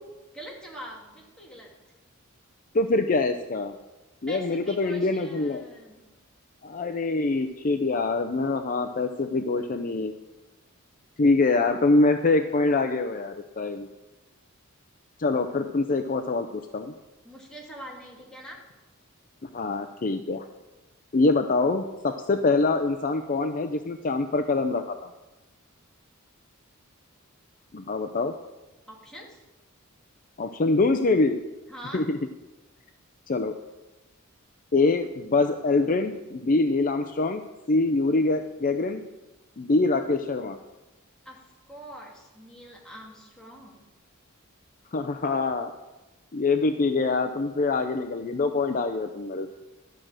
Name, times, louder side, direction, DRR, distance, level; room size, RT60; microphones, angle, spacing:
voice 1, 0.3-1.8 4.3-6.1 17.2-18.7 28.9-29.4 31.7-32.1 41.2-43.8, right 1 dB, 5° left, -3 dB, 2.6 m, -44 dB
voice 2, 2.7-3.7 4.2-5.6 6.6-10.1 11.2-13.9 15.2-16.9 19.4-20.5 21.1-25.1 27.7-28.3 30.4-31.4 31.9-32.2 33.3-33.5 34.7-37.4 37.7-39.0 39.6-40.6 44.9-45.7 46.3-49.5, left 3 dB, 40° left, 7 dB, 0.5 m, -24 dB
12.0 x 6.3 x 8.8 m, 1.1 s
head